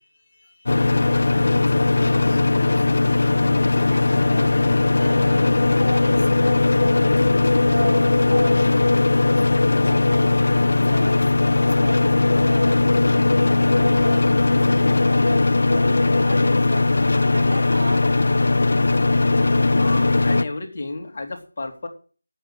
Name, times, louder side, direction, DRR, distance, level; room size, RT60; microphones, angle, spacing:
sound 1, 0.7-20.4, left 3 dB, 60° left, 0.7 m, -18 dB
voice 1, 2.0-4.6 4.9-5.5 5.8-9.4 9.9-13.1 13.3-18.5, right 2 dB, 60° right, 1.8 m, -37 dB
voice 2, 19.8-21.9, left 2 dB, 40° left, 2.8 m, -32 dB
10.5 x 8.1 x 8.8 m
figure-of-eight pair, 165°, 0 cm